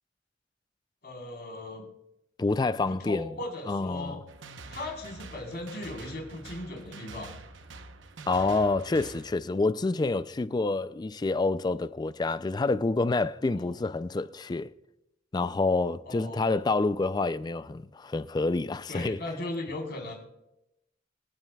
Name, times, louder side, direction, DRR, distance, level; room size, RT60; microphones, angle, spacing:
voice 1, 1.0-1.9 2.9-4.2 4.7-7.3 13.5-13.8 16.1-16.6 18.9-20.1, left 2 dB, 55° left, 4.0 m, -38 dB
voice 2, 2.4-3.3 3.7-4.2 8.3-14.7 15.3-19.2, left 3 dB, 20° left, 0.3 m, -28 dB
sound 1, 4.3-9.3, right 3 dB, 75° right, 0.9 m, -46 dB
27.0 x 9.1 x 2.3 m
head